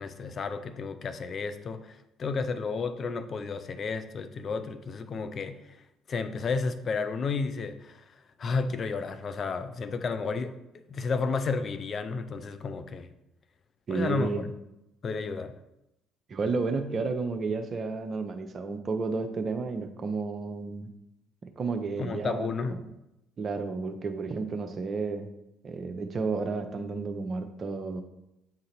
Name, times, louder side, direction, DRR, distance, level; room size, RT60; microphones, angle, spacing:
voice 1, 0.0-5.6 6.1-8.0 8.4-13.1 13.9-14.5 15.0-15.5 22.0-22.8, left 4 dB, 45° left, 10 dB, 0.6 m, -32 dB
voice 2, 13.9-14.4 16.3-20.9 21.6-22.8 23.4-25.3 25.6-28.0, right 4 dB, 40° right, 7 dB, 0.7 m, -32 dB
7.4 x 3.8 x 4.3 m, 0.89 s
figure-of-eight pair, 50°, 0 cm